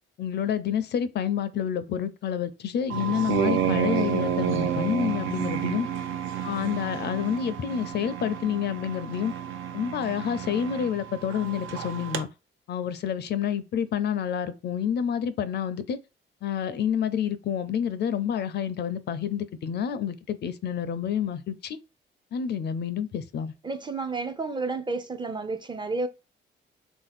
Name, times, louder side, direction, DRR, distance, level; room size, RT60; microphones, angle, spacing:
voice 1, 0.2-5.9 6.4-9.3 9.7-12.3 12.7-16.0 16.4-21.8 22.3-23.5, left 8 dB, 60° left, 0.5 m, -28 dB
sound 1, 2.9-12.2, right 9 dB, 80° right, 0.6 m, -30 dB
voice 2, 23.6-26.1, right 3 dB, 25° right, 0.4 m, -31 dB
3.5 x 2.6 x 4.1 m
cardioid pair, 90°, 20 cm